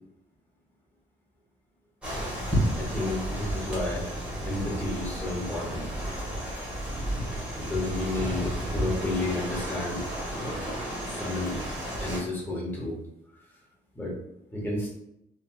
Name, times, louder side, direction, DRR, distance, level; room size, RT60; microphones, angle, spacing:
sound 1, 2.0-12.2, equal, 5° right, 1.4 m, -32 dB
voice 1, 2.8-4.1 4.4-5.9 7.5-10.0 10.3-10.6 11.1-11.7 12.0-13.0 13.9-14.2 14.5-14.9, left 2 dB, 10° left, -4 dB, 1.3 m, -31 dB
2.9 x 2.6 x 2.3 m, 0.79 s
cardioid pair, 90°, 20 cm